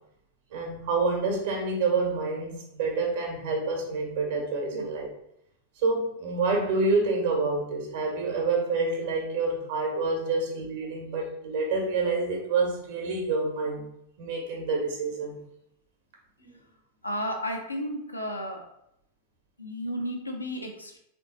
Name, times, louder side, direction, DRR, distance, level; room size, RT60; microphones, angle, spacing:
voice 1, 0.5-5.1 5.8-13.9 14.2-15.4 16.4-16.6, right 3 dB, 55° right, 0 dB, 1.5 m, -28 dB
voice 2, 17.0-18.7 19.6-21.0, equal, 85° left, 1 dB, 0.8 m, -33 dB
3.9 x 3.5 x 3.8 m, 0.77 s
figure-of-eight pair, 90°, 0 cm